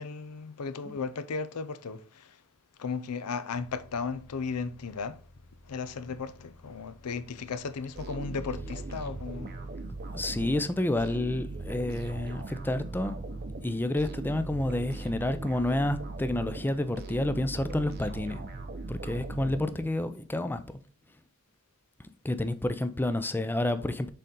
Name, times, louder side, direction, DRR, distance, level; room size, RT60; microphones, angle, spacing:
voice 1, 0.0-2.4 2.8-5.2 5.6-9.5, left 5 dB, 85° left, 0.6 m, -35 dB
sound 1, 3.5-10.1, left 1 dB, 60° left, 2.1 m, -57 dB
sound 2, 8.0-20.2, right 2 dB, 45° right, 0.8 m, -39 dB
voice 2, 10.1-13.2 13.6-18.4 18.9-20.8 22.2-24.1, left 1 dB, 10° left, 0.4 m, -29 dB
6.6 x 3.9 x 3.7 m
head